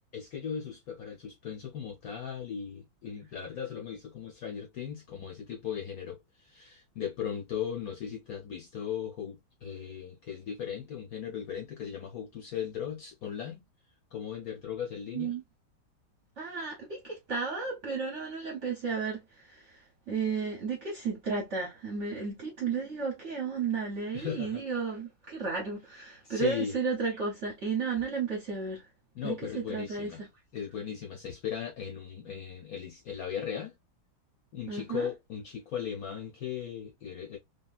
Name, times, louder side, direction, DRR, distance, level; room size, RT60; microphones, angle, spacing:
voice 1, 0.1-13.6 14.1-15.4 24.1-24.6 26.2-26.7 29.1-30.3 30.5-33.7 34.5-37.4, left 8 dB, 60° left, 1.0 m, -37 dB
voice 2, 16.4-28.8 29.2-30.1 34.7-35.1, right 5 dB, 55° right, 0.9 m, -33 dB
2.8 x 2.7 x 2.3 m
omnidirectional pair, 2.1 m